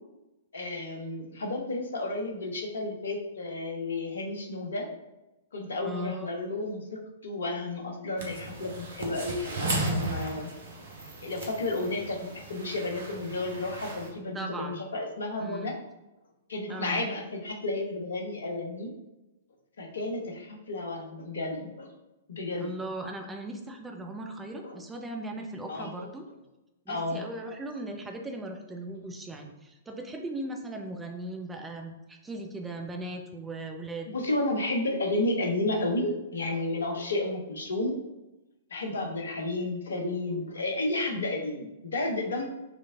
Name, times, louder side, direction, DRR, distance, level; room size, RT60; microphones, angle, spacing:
voice 1, 0.5-4.9 5.5-10.5 11.2-15.7 16.5-18.9 19.8-21.9 22.3-22.7 24.6-24.8 25.7-26.1 26.9-27.3 34.1-38.0 38.7-42.5, left 2 dB, 65° left, 3 dB, 0.9 m, -32 dB
voice 2, 5.8-6.3 14.3-14.9 15.4-15.7 16.7-17.0 22.6-26.2 26.9-34.1 38.9-39.0, right 1 dB, 10° right, 2 dB, 0.6 m, -38 dB
sound 1, 8.2-14.1, right 2 dB, 60° right, 1.0 m, -35 dB
6.1 x 3.1 x 2.6 m, 0.99 s
figure-of-eight pair, 110°, 0 cm